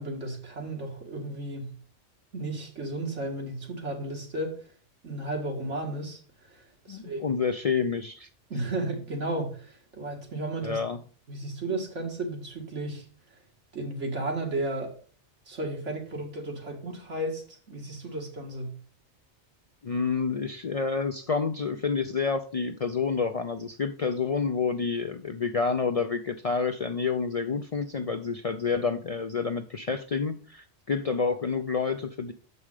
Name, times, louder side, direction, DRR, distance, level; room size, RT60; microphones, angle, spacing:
voice 1, 0.0-1.7 2.3-4.6 5.0-7.3 8.5-10.8 11.3-13.0 13.7-14.9 15.5-18.8, right 2 dB, 90° right, 2.3 m, -34 dB
voice 2, 6.9-8.3 10.6-11.0 19.8-32.3, left 5 dB, 55° left, 0.4 m, -29 dB
7.3 x 5.4 x 4.8 m
omnidirectional pair, 1.2 m